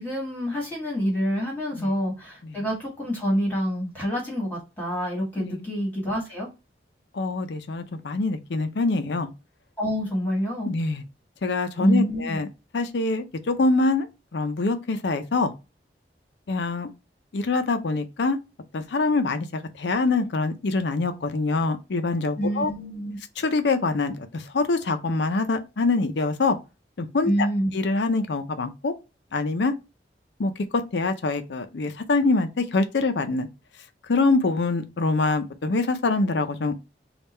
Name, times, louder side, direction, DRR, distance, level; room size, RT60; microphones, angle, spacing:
voice 1, 0.0-6.5 9.8-10.7 11.8-12.4 22.4-23.2 27.2-27.7, equal, 10° left, 1.4 m, -27 dB
voice 2, 7.1-9.3 10.6-11.0 11.4-12.5 12.7-14.1 14.3-15.5 16.5-16.9 17.3-18.4 18.7-22.7 23.4-26.6 27.0-27.5 27.7-28.9 29.3-29.7 30.4-33.5 34.1-36.7, left 3 dB, 80° left, 0.5 m, -25 dB
3.6 x 2.4 x 4.1 m
head